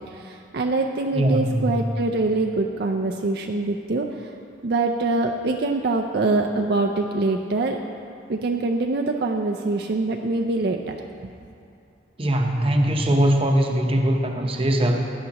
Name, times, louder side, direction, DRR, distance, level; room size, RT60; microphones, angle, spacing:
voice 1, 0.1-4.3 4.6-7.8 8.3-11.0, right 2 dB, 55° right, 3 dB, 0.5 m, -24 dB
voice 2, 1.1-1.7 12.2-15.0, right 1 dB, 30° right, 2 dB, 0.8 m, -21 dB
16.5 x 10.5 x 2.9 m, 2.6 s
head